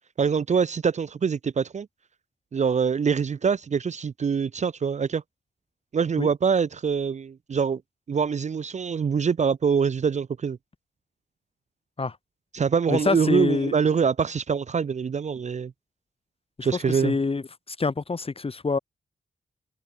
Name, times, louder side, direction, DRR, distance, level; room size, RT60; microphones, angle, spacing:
voice 1, 0.2-1.9 2.5-5.2 5.9-7.8 8.1-10.6 12.5-15.7 16.6-17.2, right 6 dB, 45° right, 0.5 m, -24 dB
voice 2, 12.9-13.7 16.6-17.4 17.7-18.8, left 4 dB, 35° left, 1.5 m, -26 dB
cardioid pair, 75°, 17 cm